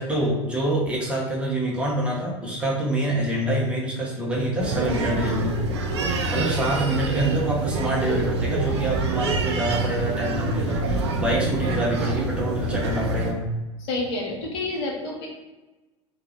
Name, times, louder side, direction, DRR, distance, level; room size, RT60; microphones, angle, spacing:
voice 1, 0.0-5.6 6.0-13.5, right 1 dB, 5° right, -4 dB, 1.3 m, -26 dB
sound 1, 4.6-13.3, right 3 dB, 65° right, 0.7 m, -26 dB
voice 2, 13.8-15.3, left 2 dB, 55° left, -1 dB, 1.1 m, -29 dB
3.8 x 2.7 x 4.2 m, 1.1 s
figure-of-eight pair, 80°, 15 cm